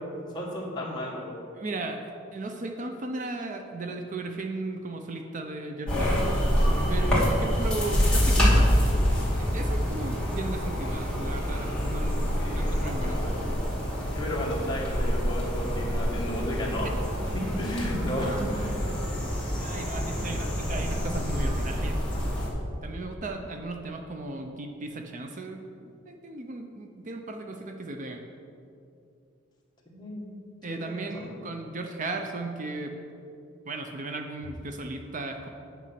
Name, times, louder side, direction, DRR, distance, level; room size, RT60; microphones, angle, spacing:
voice 1, 0.3-1.4 12.4-13.3 14.2-16.9 17.3-18.7 29.9-30.2 30.7-31.3, equal, 20° left, -3 dB, 1.8 m, -33 dB
voice 2, 1.5-6.3 6.9-8.7 9.4-13.2 18.2-18.8 19.6-22.0 22.8-28.2 30.6-32.9 33.6-35.5, right 2 dB, 40° right, 5 dB, 0.6 m, -36 dB
sound 1, 5.9-22.5, equal, 5° left, 2.3 m, -26 dB
9.2 x 6.6 x 5.9 m, 2.6 s
head